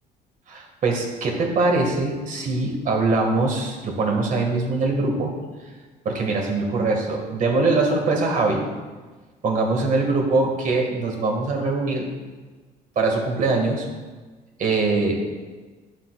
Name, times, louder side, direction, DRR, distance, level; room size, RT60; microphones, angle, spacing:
voice 1, 0.5-5.4 6.0-8.7 9.4-12.1 12.9-13.9 14.6-15.2, right 3 dB, 50° right, 1 dB, 1.7 m, -22 dB
11.5 x 7.1 x 2.3 m, 1.3 s
cardioid pair, 110°, 17 cm